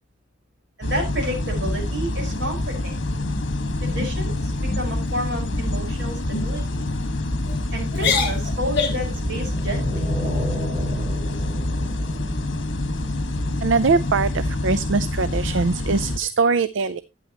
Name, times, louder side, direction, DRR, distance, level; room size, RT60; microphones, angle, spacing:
sound 1, 0.8-16.2, left 1 dB, 70° left, 1.6 m, -26 dB
voice 1, 0.8-2.9 3.8-4.5 4.8-6.8 7.7-10.1, equal, 60° right, 0 dB, 4.8 m, -30 dB
sound 2, 2.2-2.8 3.2-3.5 3.8-4.1 4.5-4.8 5.5-5.8 6.3-6.5 7.2-7.6 7.9-9.1, left 5 dB, 55° left, 3.4 m, -27 dB
sound 3, 8.9-13.3, equal, 25° right, 4.7 m, -32 dB
voice 2, 13.6-17.0, right 4 dB, 75° right, 15 dB, 0.5 m, -22 dB
11.5 x 9.2 x 2.9 m, 0.23 s
head